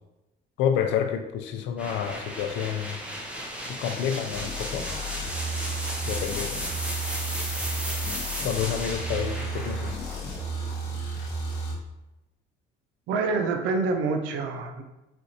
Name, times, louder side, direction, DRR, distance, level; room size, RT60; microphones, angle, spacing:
voice 1, 0.6-3.0 3.7-4.9 6.1-6.7 8.4-10.0, left 8 dB, 80° left, 6 dB, 0.4 m, -29 dB
sound 1, 1.8-11.5, equal, 5° right, 0.6 m, -35 dB
sound 2, 4.3-11.7, right 2 dB, 65° left, 1.1 m, -33 dB
voice 2, 13.1-14.8, right 4 dB, 85° right, 5 dB, 0.5 m, -26 dB
4.3 x 2.5 x 2.7 m, 1.0 s
cardioid pair, 130°, 19 cm